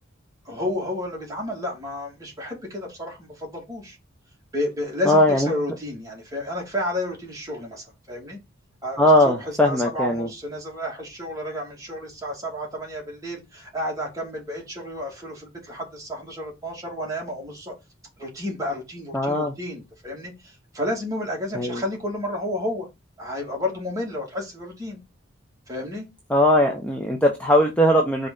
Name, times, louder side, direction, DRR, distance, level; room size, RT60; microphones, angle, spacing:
voice 1, 0.4-4.0 4.5-8.4 8.8-17.7 18.2-22.9 23.2-25.0 25.7-26.1, left 1 dB, 15° right, 2.4 m, -31 dB
voice 2, 5.0-5.5 9.0-10.3 19.1-19.5 21.5-21.8 26.3-28.3, left 1 dB, 5° left, 0.8 m, -19 dB
5.4 x 4.0 x 5.6 m
head